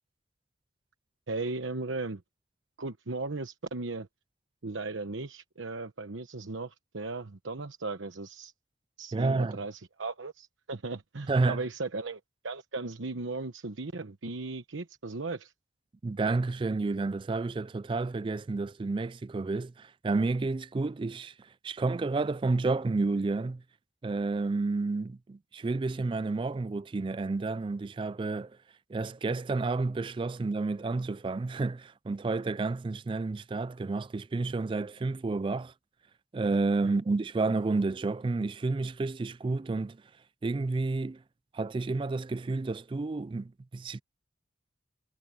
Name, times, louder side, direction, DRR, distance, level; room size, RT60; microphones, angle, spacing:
voice 1, 1.3-2.2 2.8-4.1 4.6-8.5 9.0-15.5 36.8-37.0, right 3 dB, 85° right, 1.0 m, -37 dB
voice 2, 9.1-9.6 11.3-11.6 16.0-23.6 24.0-28.6 28.9-35.7 36.3-40.0 40.4-41.2 41.5-44.0, right 3 dB, 25° right, 0.3 m, -30 dB
head